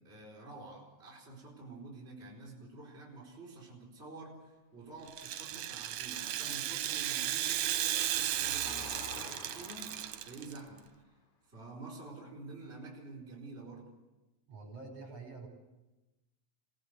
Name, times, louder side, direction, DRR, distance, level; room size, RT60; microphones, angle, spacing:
voice 1, 0.0-10.9 11.5-13.9, right 2 dB, 20° right, -3 dB, 4.7 m, -49 dB
Rattle (instrument), 5.1-10.6, right 12 dB, 85° right, 2.4 m, -35 dB
Engine, 5.3-10.9, left 3 dB, 75° left, 4.3 m, -51 dB
voice 2, 14.5-15.5, right 3 dB, 55° right, 2 dB, 6.4 m, -47 dB
26.5 x 18.0 x 8.2 m, 1.1 s
omnidirectional pair, 3.4 m